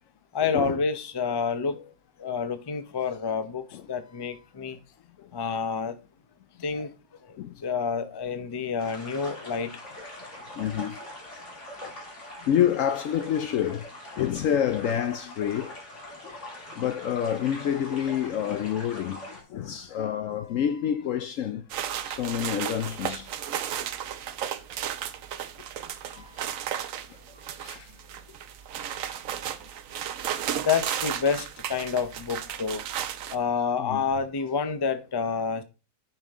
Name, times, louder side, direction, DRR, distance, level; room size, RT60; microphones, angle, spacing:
voice 1, 0.3-1.9 2.2-4.8 5.3-6.0 6.6-6.9 7.6-9.8 30.6-32.8 33.3-35.6, left 5 dB, 25° left, 0.5 m, -28 dB
sound 1, 8.8-19.4, left 1 dB, 45° left, 3.1 m, -43 dB
voice 2, 10.6-11.0 11.4-11.9 12.4-15.8 16.2-16.4 16.8-21.6 22.1-23.4 26.1-26.4 26.8-28.0 28.7-29.1 30.4-30.6 33.8-34.0, left 9 dB, 70° left, 0.8 m, -29 dB
sound 2, 21.7-33.4, right 9 dB, 65° right, 1.0 m, -34 dB
10.5 x 5.6 x 3.6 m
omnidirectional pair, 1.7 m